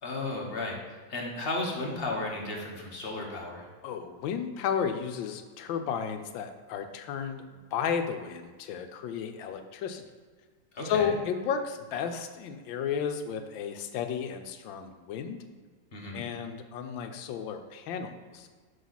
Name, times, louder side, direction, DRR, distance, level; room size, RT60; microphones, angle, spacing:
voice 1, 0.0-3.7 10.7-11.2 15.9-16.2, left 2 dB, 35° left, -1 dB, 1.1 m, -34 dB
voice 2, 3.8-10.0 10.8-15.4 16.1-18.5, left 7 dB, 80° left, 8 dB, 1.3 m, -33 dB
6.5 x 5.4 x 4.0 m, 1.5 s
omnidirectional pair, 2.1 m